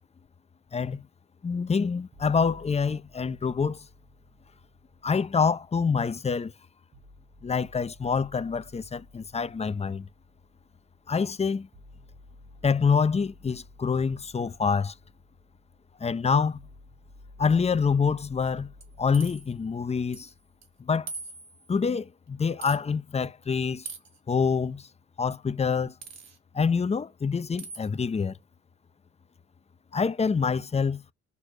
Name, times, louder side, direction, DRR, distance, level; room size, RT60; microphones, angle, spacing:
voice 1, 0.7-1.0 1.4-3.8 5.0-6.5 7.4-10.1 11.1-11.7 12.6-14.9 16.0-16.6 17.4-18.7 19.0-20.3 20.9-21.1 21.7-23.9 24.3-24.8 25.2-25.9 26.5-28.3 29.9-31.0, left 5 dB, 20° left, 0.6 m, -26 dB
sound 1, 2.1-6.1 6.9-20.9, left 2 dB, 40° right, 4.1 m, -54 dB
sound 2, 18.8-19.5 20.1-20.3 20.6-20.7 21.1-21.7 22.6-22.8 23.9-24.2 26.0-26.4 27.6-27.9, right 4 dB, 60° right, 2.6 m, -41 dB
6.9 x 5.9 x 4.9 m
cardioid pair, 90°, 30 cm